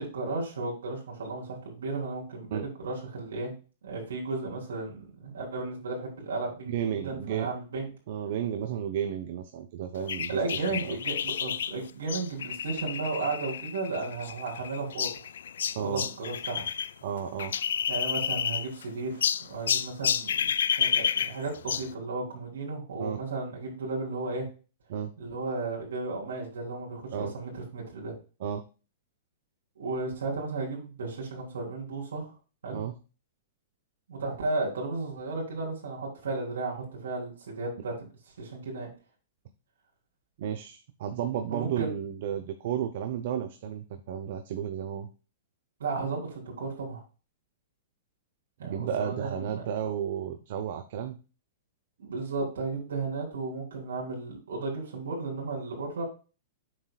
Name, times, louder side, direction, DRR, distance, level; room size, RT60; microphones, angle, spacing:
voice 1, 0.0-3.5 3.8-7.9 10.3-15.1 15.8-16.7 17.9-24.5 25.2-28.2 29.8-32.3 32.6-32.8 34.1-38.1 38.4-38.9 41.5-41.9 45.8-47.0 48.6-49.6 52.0-56.0, right 3 dB, 90° right, -2 dB, 3.5 m, -34 dB
voice 2, 6.7-7.5 8.1-11.0 15.8-16.0 17.0-17.5 23.0-23.2 24.9-25.1 27.1-27.3 28.4-28.6 32.7-32.9 40.4-45.1 48.6-51.2, right 9 dB, 55° right, 7 dB, 0.8 m, -33 dB
sound 1, 10.1-16.9 17.2-18.8 19.2-21.9, left 8 dB, 85° left, 0.4 m, -30 dB
7.6 x 6.6 x 2.3 m, 0.34 s
hypercardioid pair, 155°, 0 cm